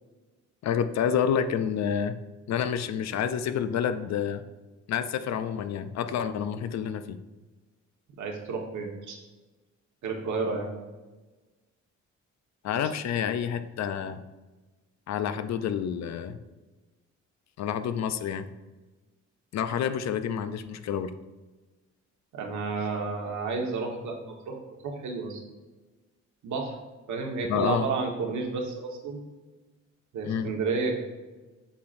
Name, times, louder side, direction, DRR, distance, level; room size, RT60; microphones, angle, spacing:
voice 1, 0.6-2.2 2.5-4.4 4.9-7.2 12.6-14.2 15.1-16.4 17.6-18.5 19.5-21.1 27.5-27.9 30.2-30.5, left 8 dB, 60° left, 11 dB, 0.6 m, -28 dB
voice 2, 8.2-9.2 10.0-10.7 22.3-24.6 24.8-25.4 26.4-26.7 27.1-29.2 30.1-31.0, right 4 dB, 70° right, 1 dB, 1.5 m, -31 dB
8.2 x 5.8 x 2.6 m, 1.2 s
cardioid pair, 90°, 30 cm